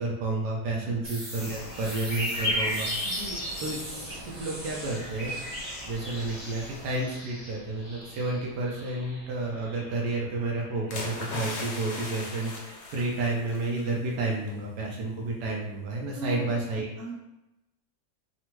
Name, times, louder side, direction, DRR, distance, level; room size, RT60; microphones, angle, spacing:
voice 1, 0.0-2.9 3.6-3.8 4.1-5.3 5.9-16.9, right 2 dB, 80° right, -2 dB, 1.2 m, -31 dB
sound 1, 1.0-12.7, right 1 dB, 25° right, 1.1 m, -44 dB
sound 2, 1.3-6.9, left 1 dB, 30° left, 0.7 m, -34 dB
voice 2, 3.0-3.4 16.1-16.5 17.0-17.1, right 3 dB, 50° right, -6 dB, 1.1 m, -38 dB
sound 3, 10.9-13.9 14.3-14.5, left 2 dB, 80° left, 1.3 m, -38 dB
3.4 x 2.1 x 3.0 m, 0.93 s
omnidirectional pair, 1.8 m